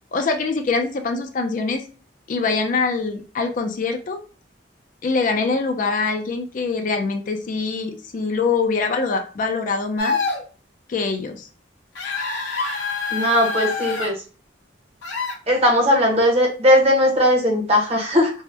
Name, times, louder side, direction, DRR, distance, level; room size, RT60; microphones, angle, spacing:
voice 1, 0.1-1.8 2.3-4.2 5.0-10.2 10.9-11.5, left 4 dB, 45° left, 5 dB, 0.4 m, -24 dB
sound 1, 10.0-10.4 11.9-14.1 15.0-15.3, left 4 dB, 85° left, 0.7 m, -26 dB
voice 2, 13.1-14.2 15.5-18.3, equal, 35° right, 1 dB, 0.8 m, -18 dB
2.7 x 2.1 x 3.2 m, 0.38 s
head